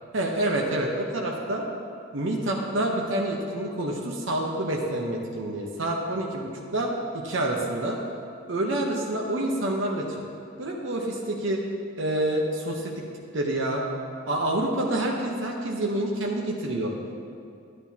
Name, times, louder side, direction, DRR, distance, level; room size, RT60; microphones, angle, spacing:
voice 1, 0.1-1.6 2.1-6.9 7.2-8.0 8.5-10.1 10.6-11.6 12.0-13.0 13.3-13.8 14.3-16.9, right 1 dB, 70° right, -1 dB, 0.9 m, -27 dB
11.0 x 9.4 x 2.8 m, 2.4 s
head